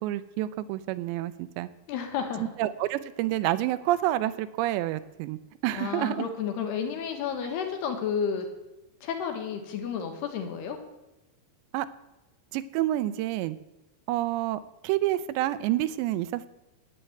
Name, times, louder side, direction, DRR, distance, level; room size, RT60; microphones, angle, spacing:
voice 1, 0.0-1.7 2.4-5.4 5.6-6.2 11.7-11.9 12.5-13.6 14.1-16.5, right 14 dB, 85° right, 13 dB, 2.9 m, -28 dB
voice 2, 1.9-2.5 5.7-8.5 9.0-10.8, left 7 dB, 75° left, 5 dB, 3.4 m, -31 dB
9.8 x 9.2 x 9.1 m, 1.0 s
omnidirectional pair, 5.0 m